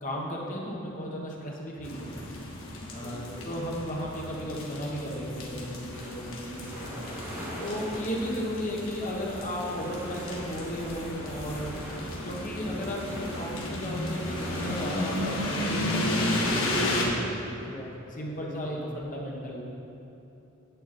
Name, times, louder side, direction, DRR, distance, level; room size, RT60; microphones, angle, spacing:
voice 1, 0.0-2.1 2.9-6.9 7.6-11.8 12.2-17.3 18.2-19.6, equal, 40° left, -2 dB, 1.4 m, -35 dB
sound 1, 1.8-17.0, left 1 dB, 85° left, 1.4 m, -34 dB
sound 2, 2.1-15.7, left 1 dB, 70° left, 2.3 m, -53 dB
voice 2, 3.0-3.4 17.6-19.0, left 1 dB, 15° left, -3 dB, 1.2 m, -44 dB
sound 3, 5.9-17.1, equal, 10° right, 2.3 m, -41 dB
9.4 x 7.8 x 4.3 m, 2.9 s
head